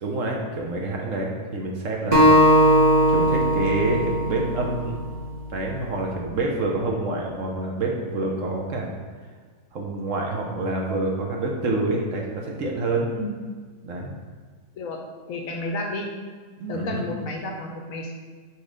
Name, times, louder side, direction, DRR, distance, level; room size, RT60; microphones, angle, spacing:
voice 1, 0.0-2.3 3.1-5.0 5.5-8.9 9.7-13.1 13.8-14.1 16.6-17.0, right 2 dB, 60° right, 0 dB, 1.0 m, -27 dB
Acoustic guitar, 2.1-5.4, equal, 25° right, 1.0 m, -19 dB
voice 2, 15.3-16.1 16.7-18.1, left 2 dB, 65° left, 2 dB, 1.0 m, -31 dB
4.8 x 4.2 x 5.1 m, 1.5 s
omnidirectional pair, 1.7 m